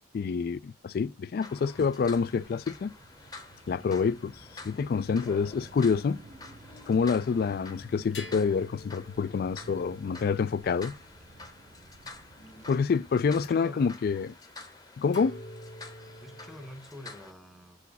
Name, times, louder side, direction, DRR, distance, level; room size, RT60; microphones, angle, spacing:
voice 1, 0.1-2.9 3.7-4.3 4.6-6.2 6.9-10.9 12.7-14.3 15.0-15.3, left 5 dB, 55° left, 0.3 m, -27 dB
sound 1, 1.4-17.3, left 3 dB, 20° left, 1.0 m, -49 dB
Bird vocalization bird call bird song, 1.5-13.5, right 2 dB, 45° right, 0.6 m, -54 dB
sound 2, 6.3-6.5 8.1-11.9 13.4-13.5 15.1-16.7, left 1 dB, 85° left, 2.1 m, -48 dB
voice 2, 13.3-14.0 16.0-17.8, equal, ahead, 0.8 m, -47 dB
7.0 x 4.9 x 4.0 m
head